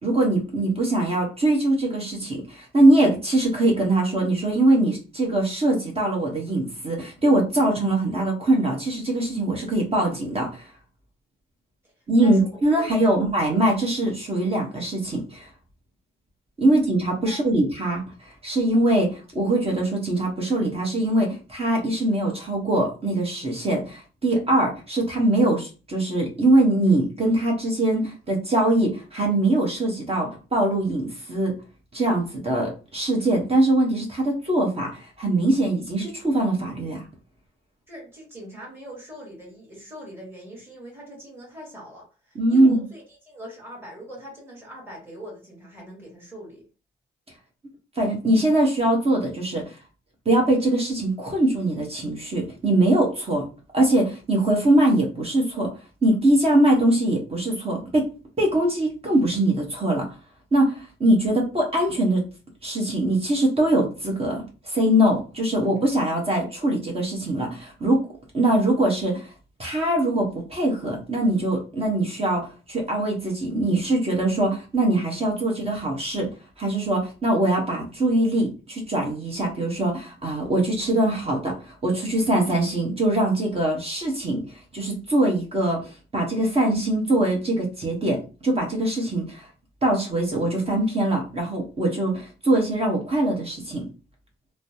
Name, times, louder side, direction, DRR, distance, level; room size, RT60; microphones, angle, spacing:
voice 1, 0.0-10.7 12.1-15.5 16.6-31.5 31.9-37.0 42.3-42.8 48.0-49.7 50.2-53.5 53.7-55.7 56.0-58.1 58.4-60.1 60.5-62.2 62.6-68.1 68.3-69.3 69.6-76.3 76.6-84.4 84.7-89.5 89.8-93.8, right 1 dB, 30° right, 0 dB, 1.1 m, -22 dB
voice 2, 12.8-13.2 17.2-17.4 37.9-46.6, equal, 10° right, -3 dB, 1.6 m, -42 dB
3.1 x 2.1 x 2.7 m, 0.33 s
cardioid pair, 90°, 20 cm